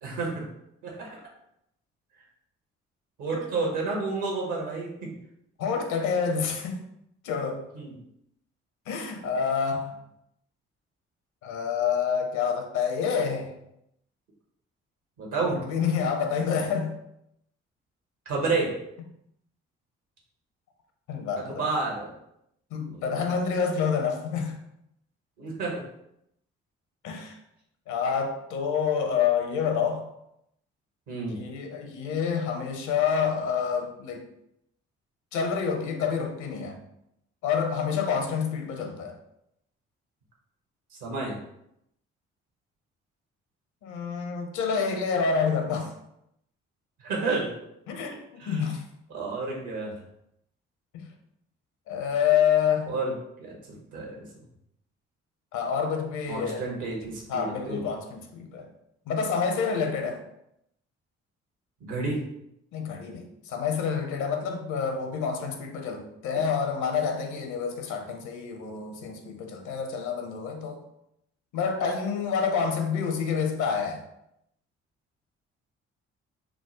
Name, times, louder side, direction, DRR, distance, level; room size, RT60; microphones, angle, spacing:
voice 1, 0.0-0.5 0.8-1.2 3.2-5.2 7.7-8.0 15.2-15.6 18.3-18.8 21.4-22.1 22.8-23.0 25.4-25.8 31.1-31.4 41.0-41.4 47.0-47.5 48.4-48.7 49.1-50.0 52.9-53.1 53.4-54.2 56.3-57.8 61.8-62.2, right 3 dB, 70° right, -1 dB, 1.1 m, -30 dB
voice 2, 5.6-6.9 7.2-7.7 8.9-10.0 11.4-13.5 15.4-16.9 21.1-21.6 22.7-24.6 27.0-27.4 27.9-30.1 31.3-34.3 35.3-36.8 37.4-39.1 43.8-45.9 47.9-48.8 50.9-51.1 51.9-52.9 55.5-56.6 57.3-58.7 59.1-60.2 62.7-70.8 71.5-74.0, left 6 dB, 65° left, 4 dB, 0.7 m, -28 dB
3.6 x 2.0 x 3.0 m, 0.79 s
hypercardioid pair, 45°, 32 cm